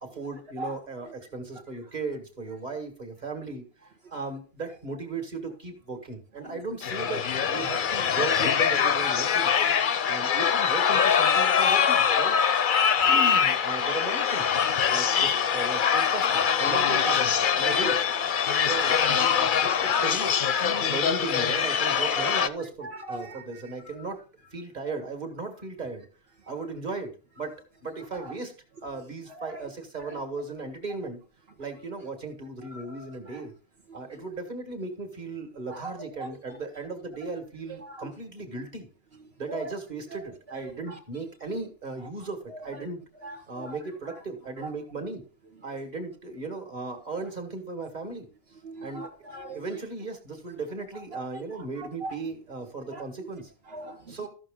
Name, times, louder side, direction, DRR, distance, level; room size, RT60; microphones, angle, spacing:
voice 1, 0.0-9.5 10.1-12.4 13.0-14.6 14.9-18.0 18.6-20.3 20.6-24.2 24.5-26.1 26.5-27.5 27.8-28.5 28.8-31.2 31.6-33.5 33.9-38.9 39.4-43.0 43.5-45.2 45.6-48.3 48.8-49.1 49.5-53.5 54.1-54.3, right 3 dB, 40° right, 2.0 m, -36 dB
sound 1, 6.8-22.5, left 7 dB, 55° left, 0.8 m, -23 dB
voice 2, 9.6-10.0 16.1-16.4 16.6-17.2 18.7-18.8 19.6-19.8 22.0-22.4 22.8-23.6 28.1-28.3 29.3-29.5 30.0-30.2 32.7-33.4 35.7-36.4 37.8-38.1 39.5-39.7 40.1-40.2 40.9-41.0 42.5-42.6 43.2-43.8 44.6-44.7 45.7-45.8 48.6-49.6 51.1-52.2 52.9-53.0 53.7-54.2, right 2 dB, 65° right, 1.4 m, -40 dB
14.0 x 6.4 x 3.8 m
omnidirectional pair, 1.1 m